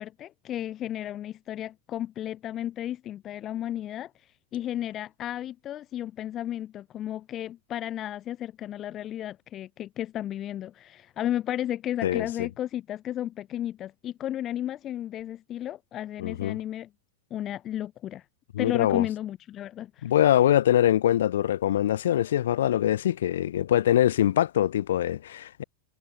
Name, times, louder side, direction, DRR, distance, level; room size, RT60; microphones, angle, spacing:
voice 1, 0.0-16.9 17.3-18.2 18.6-20.1, left 12 dB, 30° left, 0.3 m, -33 dB
voice 2, 12.0-12.5 16.2-16.6 18.5-19.1 20.0-25.6, left 11 dB, 60° left, 0.8 m, -23 dB
figure-of-eight pair, 90°, 0 cm